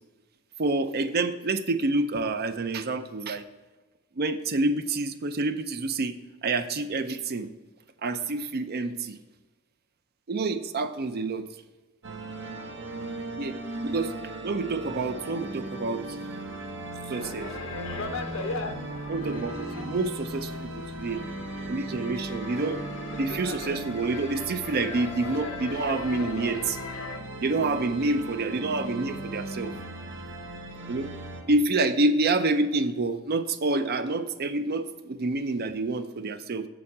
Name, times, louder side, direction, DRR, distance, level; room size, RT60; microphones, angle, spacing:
voice 1, 0.6-3.4 4.2-7.5 8.0-9.2 10.3-11.5 13.4-14.1 14.4-16.2 17.1-17.5 19.1-21.2 21.7-22.8 23.2-26.8 27.4-29.7 30.9-31.1 31.5-36.7, right 2 dB, 50° right, 10 dB, 0.5 m, -28 dB
sound 1, 12.0-31.4, right 2 dB, 65° right, 1.4 m, -37 dB
sound 2, 17.1-27.2, left 3 dB, 65° left, 0.9 m, -39 dB
7.6 x 7.1 x 4.8 m, 1.2 s
head